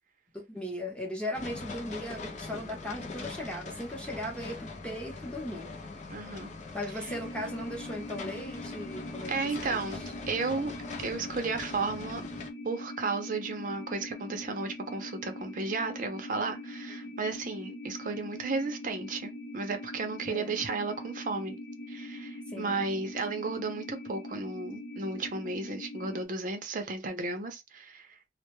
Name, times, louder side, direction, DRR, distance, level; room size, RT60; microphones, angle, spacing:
voice 1, 0.3-5.8 6.7-9.3 9.7-9.9 20.3-20.6 22.5-23.1, left 1 dB, 5° left, 0.8 m, -38 dB
sound 1, 1.3-12.5, left 3 dB, 40° left, 0.4 m, -42 dB
voice 2, 6.1-6.5 9.3-10.7 11.0-12.2 12.6-21.6 21.9-28.1, right 3 dB, 50° right, 0.5 m, -34 dB
sound 2, 7.1-26.3, left 1 dB, 90° left, 0.6 m, -42 dB
2.2 x 2.0 x 2.9 m
head